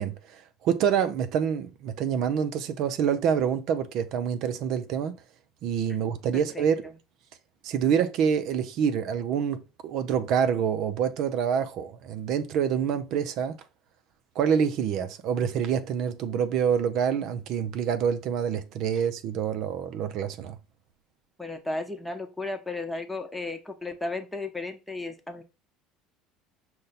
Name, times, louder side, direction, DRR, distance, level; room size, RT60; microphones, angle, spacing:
voice 1, 0.0-5.2 5.6-6.9 7.6-13.6 14.4-20.6, right 8 dB, 60° right, 0.5 m, -27 dB
voice 2, 6.3-6.7 21.4-25.4, left 2 dB, 10° left, 0.9 m, -34 dB
5.3 x 2.2 x 4.0 m
supercardioid pair, 85°, 0 cm